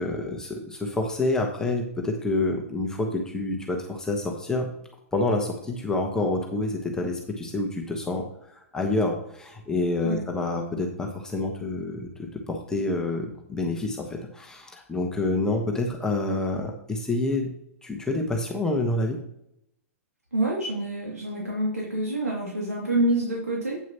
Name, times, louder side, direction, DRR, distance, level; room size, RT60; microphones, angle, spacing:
voice 1, 0.0-4.7 5.1-17.5 17.8-19.2, left 2 dB, 10° left, 1 dB, 1.2 m, -28 dB
voice 2, 20.3-23.8, right 1 dB, 85° right, -3 dB, 2.4 m, -27 dB
9.1 x 8.6 x 2.9 m, 0.74 s
figure-of-eight pair, 110°, 8 cm